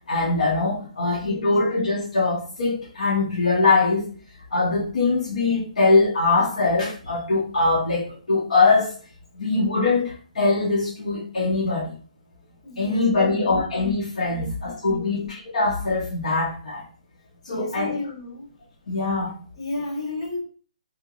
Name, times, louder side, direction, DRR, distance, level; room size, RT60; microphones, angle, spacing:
voice 1, 0.1-4.1 4.5-8.9 9.3-11.9 12.8-16.8 17.4-17.9 18.9-19.4, left 3 dB, 65° left, -5 dB, 0.9 m, -22 dB
voice 2, 1.2-1.5 12.6-13.6 14.3-14.6 14.9-15.2 17.5-18.5 19.6-20.4, left 2 dB, 40° left, -2 dB, 1.1 m, -34 dB
2.8 x 2.2 x 3.8 m, 0.40 s
hypercardioid pair, 175°, 4 cm